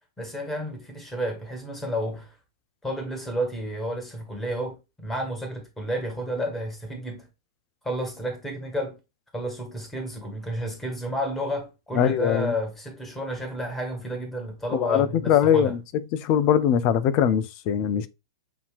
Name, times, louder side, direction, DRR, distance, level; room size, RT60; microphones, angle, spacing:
voice 1, 0.2-2.4 2.8-7.3 7.8-9.0 9.3-15.8, equal, 10° left, 1.7 m, -31 dB
voice 2, 11.9-12.5 14.7-15.8 16.2-18.1, left 9 dB, 40° left, 0.5 m, -21 dB
7.0 x 2.8 x 2.4 m
figure-of-eight pair, 100°, 2 cm